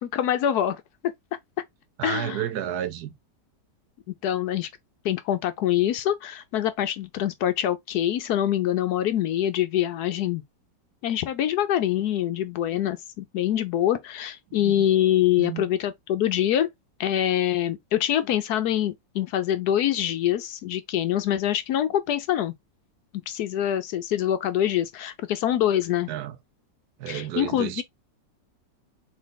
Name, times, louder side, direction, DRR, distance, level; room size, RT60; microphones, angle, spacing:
voice 1, 0.0-0.8 2.0-2.4 4.2-4.7 5.0-10.4 11.0-16.7 17.0-22.5 23.3-26.1 27.1-27.8, left 11 dB, 70° left, 1.0 m, -25 dB
voice 2, 2.0-3.1 14.5-14.8 15.4-15.6 26.1-26.4 27.0-27.8, right 11 dB, 65° right, 1.1 m, -31 dB
4.1 x 3.1 x 3.8 m
omnidirectional pair, 1.9 m